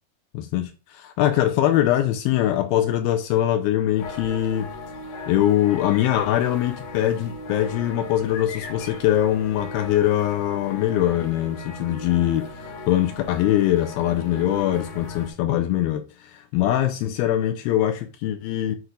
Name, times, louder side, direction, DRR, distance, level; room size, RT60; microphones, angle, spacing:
voice 1, 0.3-4.7 5.3-18.8, left 12 dB, 80° left, 2.3 m, -22 dB
sound 1, 4.0-15.3, left 2 dB, 60° left, 2.6 m, -37 dB
7.9 x 5.8 x 2.4 m
omnidirectional pair, 4.6 m